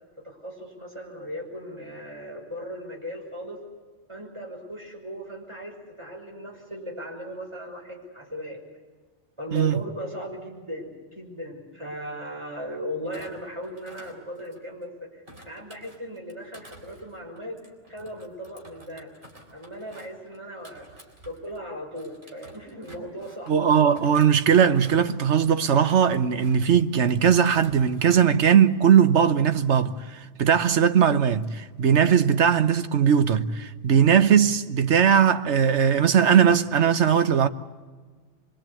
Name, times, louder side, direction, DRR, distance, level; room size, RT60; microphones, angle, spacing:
voice 1, 0.2-3.6 4.1-8.6 9.4-17.6 17.9-19.1 19.5-23.5, equal, 25° right, 6.1 m, -37 dB
Thump thud, 13.1-14.8 15.3-21.6 21.9-23.6 23.9-25.2 25.6-26.7 27.1-28.3 28.6-28.9, right 1 dB, 45° right, 4.1 m, -50 dB
voice 2, 23.5-37.5, right 7 dB, 70° right, 1.2 m, -19 dB
25.5 x 23.0 x 8.4 m
omnidirectional pair, 1.2 m